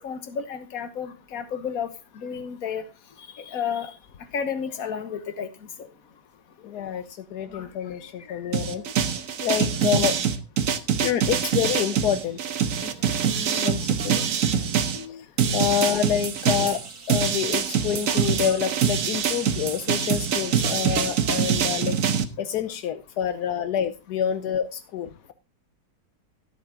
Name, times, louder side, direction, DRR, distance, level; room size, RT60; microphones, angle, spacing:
voice 1, 0.0-2.8 3.3-3.9 4.3-5.5 5.8-5.9 7.5-7.7 8.3-8.5 12.9-13.5 18.1-18.2, left 7 dB, 65° left, 1.6 m, -32 dB
voice 2, 6.6-10.1 11.0-12.4 12.8-12.9 13.4-14.2 14.5-14.7 14.9-15.3 15.5-16.8 17.1-22.0 22.4-25.3, left 9 dB, 80° left, 1.3 m, -28 dB
sound 1, 8.5-15.0 15.4-22.2, right 7 dB, 60° right, 1.3 m, -24 dB
sound 2, 15.6-22.0, right 2 dB, 35° right, 2.6 m, -48 dB
13.5 x 8.2 x 3.7 m
omnidirectional pair, 1.7 m